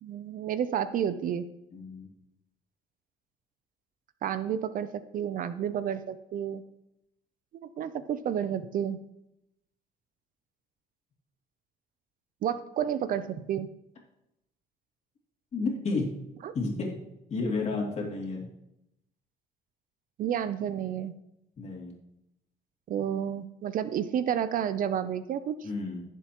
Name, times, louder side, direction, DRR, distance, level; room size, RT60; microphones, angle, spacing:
voice 1, 0.0-1.5 4.2-6.6 7.8-9.0 12.4-13.7 16.4-16.5 20.2-21.1 22.9-25.5, right 9 dB, 55° right, 13 dB, 0.6 m, -30 dB
voice 2, 1.7-2.1 15.5-16.1 16.5-16.9 17.3-18.4 21.6-21.9 25.6-26.0, left 3 dB, 40° left, -1 dB, 2.7 m, -31 dB
16.5 x 7.2 x 3.0 m, 0.85 s
cardioid pair, 110°, 17 cm